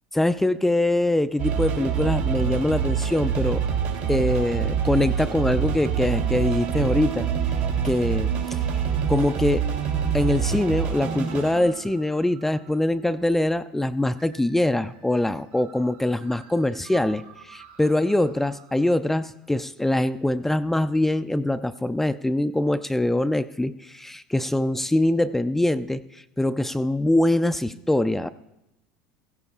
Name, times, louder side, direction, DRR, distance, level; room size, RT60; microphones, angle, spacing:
voice 1, 0.1-3.6 4.1-7.3 7.8-8.6 9.1-9.7 10.1-28.3, left 1 dB, 5° left, 11 dB, 0.4 m, -23 dB
sound 1, 1.4-12.6 14.2-14.8 15.1-15.2 15.5-18.3, right 7 dB, 70° right, 3.0 m, -26 dB
16.0 x 15.5 x 2.4 m, 0.90 s
hypercardioid pair, 85°, 4 cm